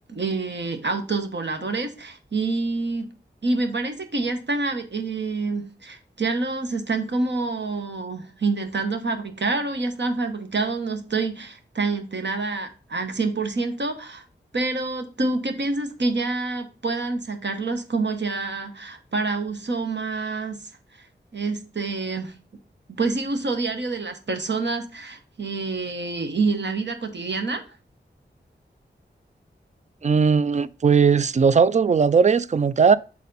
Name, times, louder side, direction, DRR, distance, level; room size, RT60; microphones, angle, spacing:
voice 1, 0.1-3.1 3.4-14.2 14.5-20.6 21.3-22.3 23.0-27.6, right 3 dB, 65° right, 1.1 m, -27 dB
voice 2, 30.0-33.0, right 5 dB, 35° right, 0.4 m, -18 dB
7.3 x 4.2 x 4.0 m
cardioid pair, 40°, 20 cm